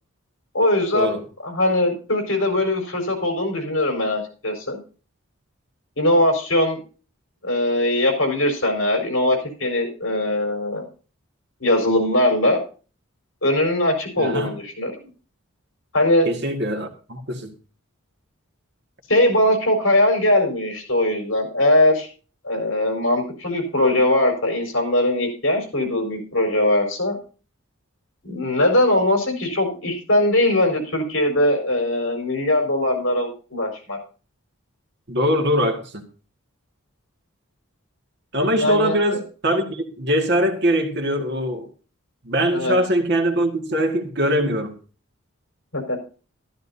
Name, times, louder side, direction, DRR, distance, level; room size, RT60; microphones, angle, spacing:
voice 1, 0.5-1.2 1.4-4.8 6.0-6.8 7.4-10.8 11.6-12.6 13.4-14.9 15.9-16.3 19.1-22.1 22.4-27.2 28.2-34.0 38.5-39.2 42.5-42.7 45.7-46.0, left 1 dB, 65° left, 4.5 m, -20 dB
voice 2, 14.2-14.5 16.3-17.5 35.1-36.1 38.3-41.7 42.2-44.7, equal, 55° right, 2.0 m, -22 dB
13.0 x 13.0 x 2.8 m
head